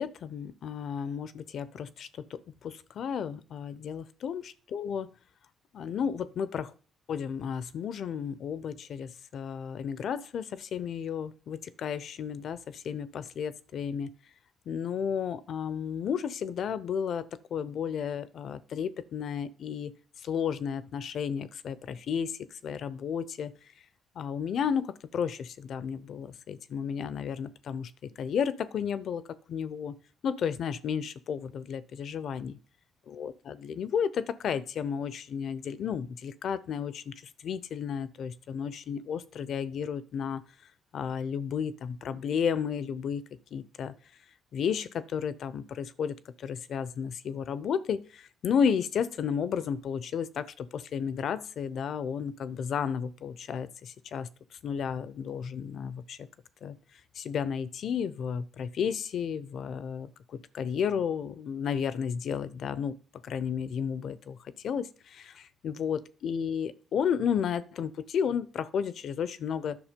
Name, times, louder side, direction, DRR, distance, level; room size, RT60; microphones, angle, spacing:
voice 1, 0.0-5.1 5.7-6.7 7.1-14.1 14.7-17.3 17.5-19.9 20.2-23.5 24.2-29.2 29.5-29.9 30.2-32.5 33.1-37.1 37.4-40.4 40.9-43.2 43.5-43.9 44.5-54.3 54.6-56.2 56.6-56.8 57.2-63.0 63.2-64.4 64.6-65.3 65.6-69.8, left 7 dB, 65° left, 16 dB, 0.7 m, -32 dB
10.5 x 6.1 x 5.2 m, 0.39 s
cardioid pair, 90°, 0 cm